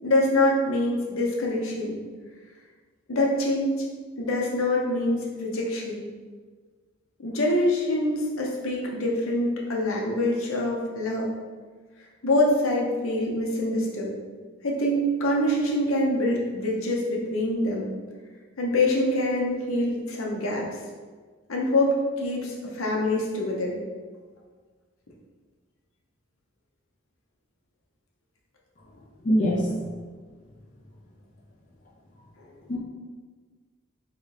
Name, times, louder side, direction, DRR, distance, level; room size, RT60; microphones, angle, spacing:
voice 1, 0.0-2.0 3.1-3.7 4.2-6.0 7.2-11.3 12.2-14.1 14.6-17.9 18.6-20.7 21.5-23.8 32.4-32.5, left 1 dB, 75° left, -2 dB, 0.8 m, -25 dB
voice 2, 29.2-29.8 32.7-32.8, equal, 35° left, -3 dB, 0.4 m, -23 dB
3.7 x 3.2 x 3.2 m, 1.5 s
head